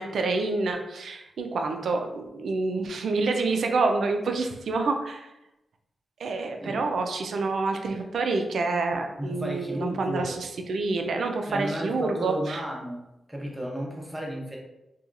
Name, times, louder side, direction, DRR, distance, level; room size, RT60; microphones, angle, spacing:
voice 1, 0.0-5.3 6.2-12.6, right 3 dB, 75° right, 4 dB, 0.3 m, -27 dB
voice 2, 9.2-10.4 11.5-13.0 13.3-14.6, equal, 15° right, -1 dB, 0.7 m, -33 dB
2.8 x 2.2 x 2.5 m, 0.92 s
cardioid pair, 55°, 0 cm